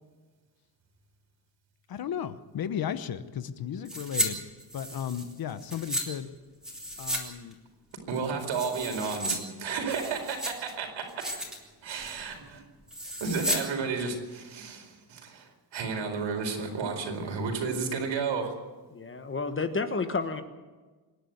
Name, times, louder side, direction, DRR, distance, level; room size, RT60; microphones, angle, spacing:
voice 1, 1.9-4.4 4.7-6.3 7.0-7.5, left 9 dB, 50° left, 13 dB, 1.0 m, -34 dB
sound 1, 3.8-4.3 4.6-6.0 6.6-7.2 7.5-7.6 8.1-9.4 9.7-10.7 11.1-11.6 11.9-12.2 12.9-13.6 13.9-14.0, equal, ahead, 3.7 m, -33 dB
voice 2, 8.1-11.3 11.8-12.6 13.2-15.5 15.7-18.5, right 5 dB, 85° right, 3 dB, 4.6 m, -32 dB
voice 3, 18.9-20.4, left 4 dB, 25° left, 9 dB, 1.2 m, -30 dB
26.0 x 11.0 x 9.4 m, 1.3 s
wide cardioid pair, 160°, 45 cm